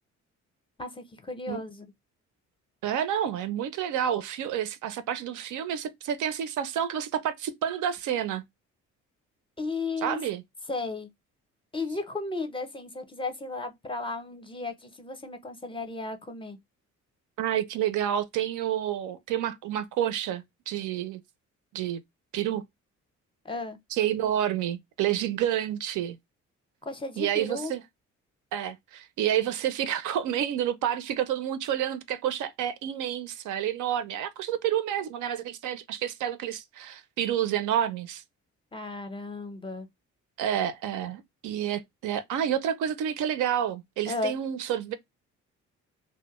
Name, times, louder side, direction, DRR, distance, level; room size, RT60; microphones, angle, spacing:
voice 1, 0.8-1.9 9.6-10.2 10.7-11.1 11.7-16.6 23.4-23.8 26.8-27.7 38.7-39.9 44.1-44.4, left 3 dB, 15° left, 0.5 m, -34 dB
voice 2, 2.8-8.4 10.0-10.4 17.4-21.2 21.7-22.0 22.3-22.6 23.9-26.2 27.2-27.8 28.5-38.2 40.4-44.9, right 10 dB, 80° right, 0.5 m, -29 dB
2.2 x 2.0 x 2.9 m
cardioid pair, 90°, 30 cm